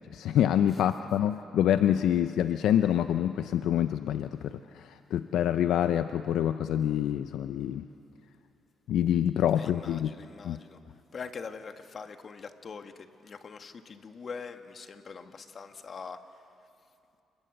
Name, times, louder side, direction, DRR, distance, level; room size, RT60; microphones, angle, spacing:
voice 1, 0.1-7.8 8.9-10.1 10.4-10.6, left 10 dB, 80° left, 10 dB, 0.6 m, -26 dB
voice 2, 9.6-10.8 11.1-16.2, left 5 dB, 45° left, 7 dB, 1.6 m, -43 dB
28.5 x 21.5 x 7.9 m, 2.6 s
cardioid pair, 90°, 0 cm